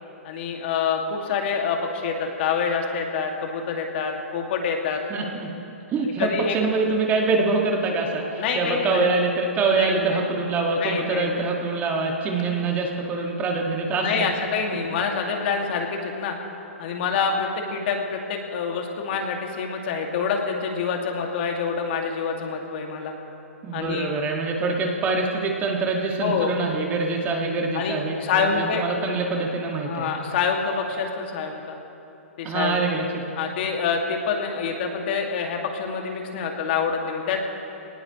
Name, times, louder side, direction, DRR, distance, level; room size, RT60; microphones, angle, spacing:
voice 1, 0.2-5.0 6.2-6.5 8.4-9.1 9.7-10.2 10.8-11.4 14.0-16.4 16.8-23.1 23.7-24.1 26.2-26.6 27.7-28.8 29.9-31.8 32.4-32.8 33.4-37.4, left 5 dB, 50° left, 2 dB, 2.3 m, -26 dB
voice 2, 5.1-5.5 5.9-14.3 23.6-30.1 32.4-33.2, right 3 dB, 25° right, 0 dB, 2.1 m, -25 dB
23.0 x 19.0 x 3.2 m, 2.9 s
hypercardioid pair, 125°, 7 cm